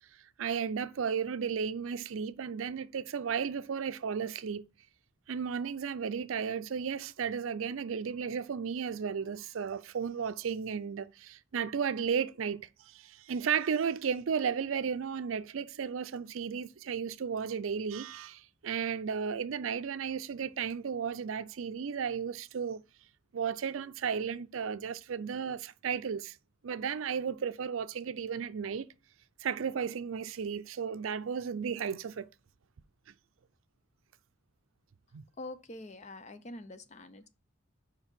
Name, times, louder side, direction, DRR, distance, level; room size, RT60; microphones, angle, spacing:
voice 1, 0.4-4.6 5.3-22.8 23.3-26.4 26.6-28.9 29.4-32.3 35.1-35.2, right 7 dB, 80° right, 0.4 m, -34 dB
voice 2, 35.4-37.3, left 2 dB, 35° left, 0.5 m, -45 dB
4.9 x 4.5 x 5.1 m
head